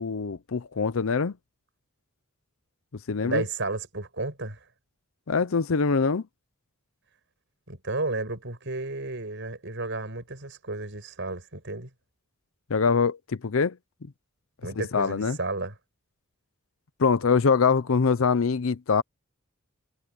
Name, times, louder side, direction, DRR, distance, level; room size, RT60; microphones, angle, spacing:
voice 1, 0.0-1.3 3.1-3.4 5.3-6.2 12.7-13.8 14.9-15.4 17.0-19.0, left 5 dB, 65° left, 0.6 m, -23 dB
voice 2, 3.2-4.6 7.7-11.9 14.6-15.7, right 2 dB, 55° right, 6.7 m, -32 dB
head